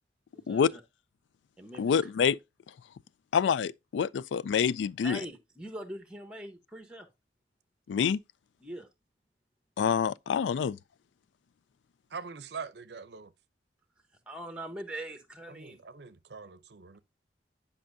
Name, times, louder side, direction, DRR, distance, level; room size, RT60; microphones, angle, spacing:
voice 1, 0.3-0.8 1.6-2.1 5.0-7.1 8.6-8.9 14.3-15.8, right 1 dB, 5° right, 1.0 m, -42 dB
voice 2, 1.8-2.4 3.3-5.2 7.9-8.2 9.8-10.8, left 7 dB, 80° left, 0.3 m, -27 dB
voice 3, 12.1-13.3 15.5-17.0, right 5 dB, 65° right, 0.6 m, -43 dB
10.0 x 5.4 x 2.6 m
head